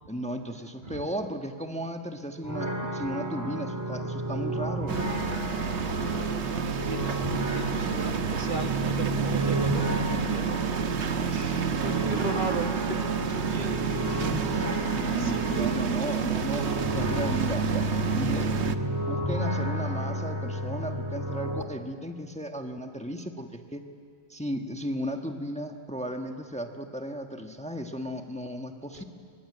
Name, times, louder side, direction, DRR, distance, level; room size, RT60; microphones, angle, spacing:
voice 1, 0.1-5.0 14.2-16.7 16.9-18.5 18.8-23.8 24.3-29.0, equal, 5° left, 4 dB, 1.2 m, -35 dB
sound 1, 2.4-21.6, right 1 dB, 15° right, 2.1 m, -32 dB
sound 2, 4.9-18.8, right 6 dB, 85° right, 1.3 m, -29 dB
voice 2, 5.8-14.4 15.1-16.2 28.9-29.0, right 2 dB, 50° right, 5 dB, 1.6 m, -38 dB
23.5 x 21.5 x 9.7 m, 2.1 s
omnidirectional pair, 1.1 m